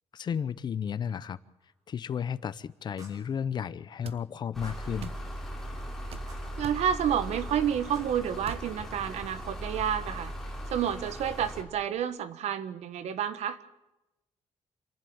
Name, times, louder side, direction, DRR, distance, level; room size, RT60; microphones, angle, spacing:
voice 1, 0.1-1.4 1.9-5.2, left 7 dB, 40° left, 16 dB, 0.7 m, -33 dB
sound 1, 1.6-1.7 3.0-3.3 4.6-5.0 6.3-6.6 7.9-8.1, right 1 dB, 30° right, 4.5 m, -53 dB
sound 2, 4.0-4.2 5.0-5.2 6.1-6.3 6.6-6.9 8.4-8.7, right 8 dB, 60° right, 1.0 m, -42 dB
sound 3, 4.5-11.6, equal, 5° left, 3.4 m, -39 dB
voice 2, 6.6-10.3 10.7-13.6, right 9 dB, 80° right, 13 dB, 1.4 m, -30 dB
27.5 x 11.0 x 8.8 m, 0.93 s
cardioid pair, 165°, 11 cm